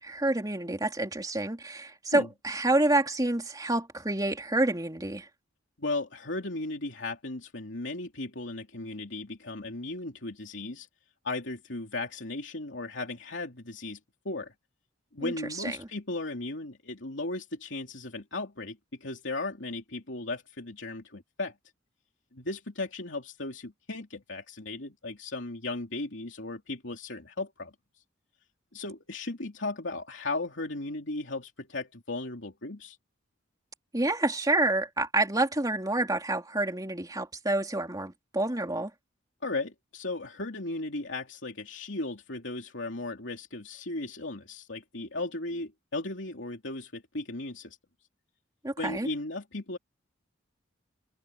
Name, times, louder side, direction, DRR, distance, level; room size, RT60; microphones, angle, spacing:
voice 1, 0.0-5.3 15.2-15.3 15.6-15.9 33.9-38.9 48.6-49.1, right 2 dB, 20° right, 3.1 m, -28 dB
voice 2, 5.8-10.9 11.2-14.0 14.2-14.5 15.1-21.6 22.3-27.7 28.7-33.0 39.4-47.8 48.8-49.8, left 2 dB, 70° left, 3.1 m, -36 dB
head